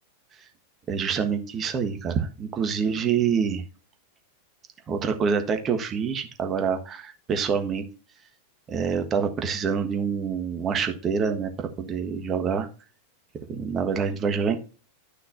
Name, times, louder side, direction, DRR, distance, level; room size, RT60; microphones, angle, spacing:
voice 1, 0.9-3.6 4.9-7.8 8.7-12.7 13.5-14.6, right 6 dB, 25° right, 7 dB, 1.4 m, -26 dB
11.5 x 6.2 x 2.6 m, 0.35 s
figure-of-eight pair, 90°, 0 cm